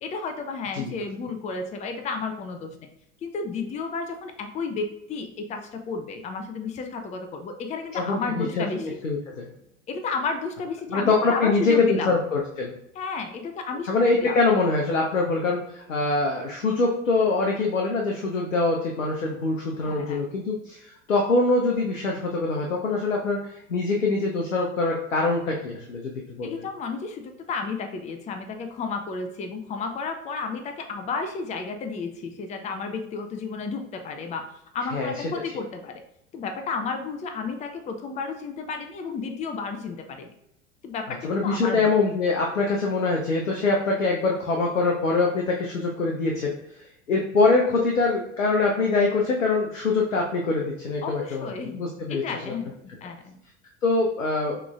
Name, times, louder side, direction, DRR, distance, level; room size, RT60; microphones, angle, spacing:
voice 1, 0.0-2.8 3.2-8.9 9.9-12.1 12.9-13.9 14.2-14.4 19.8-20.2 26.4-34.5 34.7-36.0 36.3-40.3 40.8-41.9 51.0-51.8 52.1-52.8 53.0-53.4, left 4 dB, 20° left, 6 dB, 0.5 m, -32 dB
voice 2, 8.0-9.5 10.9-12.7 13.9-23.4 23.7-26.5 34.9-35.1 41.2-46.5 47.1-52.5 53.8-54.6, left 3 dB, 90° left, 0 dB, 0.7 m, -24 dB
5.9 x 3.1 x 2.3 m, 0.80 s
figure-of-eight pair, 80°, 39 cm